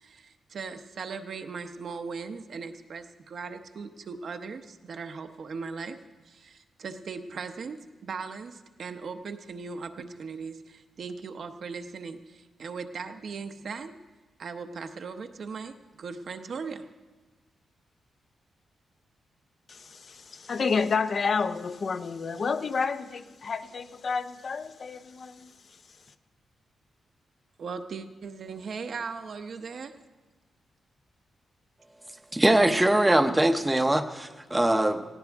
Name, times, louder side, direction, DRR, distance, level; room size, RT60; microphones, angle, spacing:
voice 1, 0.0-6.0 6.2-13.9 14.4-16.9 27.6-29.9, right 5 dB, 50° right, 7 dB, 0.8 m, -38 dB
voice 2, 19.7-25.5, left 5 dB, 40° left, 10 dB, 0.5 m, -30 dB
voice 3, 32.3-35.1, right 1 dB, 10° right, 8 dB, 0.7 m, -22 dB
18.0 x 16.0 x 3.5 m, 1.3 s
wide cardioid pair, 150°, 0 cm